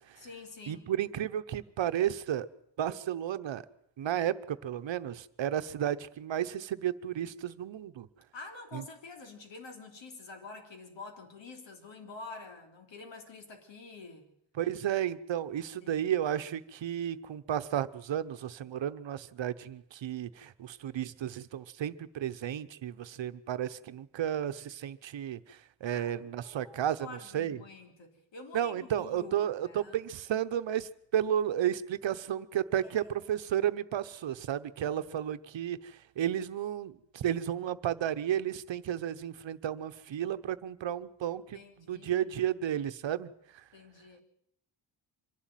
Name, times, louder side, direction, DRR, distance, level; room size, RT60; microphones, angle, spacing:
voice 1, 0.2-0.9 8.3-14.3 15.8-16.1 25.9-30.1 32.8-33.1 41.5-42.3 43.7-44.2, left 3 dB, 70° left, 4 dB, 3.5 m, -48 dB
voice 2, 0.7-2.5 2.8-3.6 4.0-8.1 8.7-8.8 14.6-27.6 28.5-35.8 36.2-41.6 41.9-43.3, right 10 dB, 70° right, 12 dB, 1.0 m, -33 dB
25.0 x 11.5 x 9.1 m, 0.74 s
wide cardioid pair, 125°, 46 cm